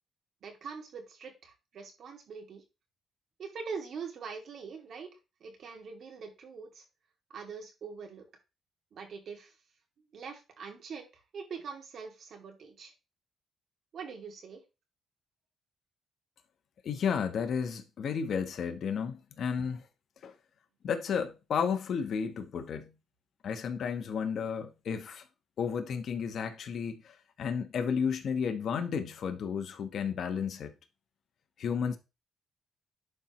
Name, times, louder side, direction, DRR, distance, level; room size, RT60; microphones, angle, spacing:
voice 1, 0.4-2.6 3.4-5.1 5.4-6.8 7.3-8.2 8.9-9.5 10.1-12.9 13.9-14.6, right 5 dB, 60° right, 2.4 m, -43 dB
voice 2, 16.8-19.8 20.2-20.3 20.8-22.9 23.4-25.2 25.6-30.7 31.6-32.0, left 6 dB, 60° left, 1.1 m, -32 dB
11.0 x 4.4 x 3.0 m
cardioid pair, 110°, 0 cm